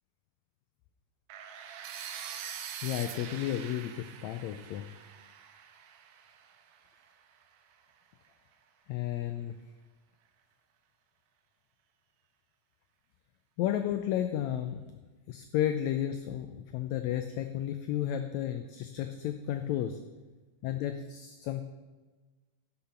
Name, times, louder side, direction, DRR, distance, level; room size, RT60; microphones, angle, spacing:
sound 1, 1.3-7.2, right 8 dB, 90° right, 2.3 m, -44 dB
voice 1, 2.8-4.8 8.9-9.5 13.6-14.8 15.3-20.0 20.6-21.6, left 11 dB, 85° left, 8 dB, 1.6 m, -32 dB
10.5 x 5.8 x 5.7 m, 1.3 s
omnidirectional pair, 3.7 m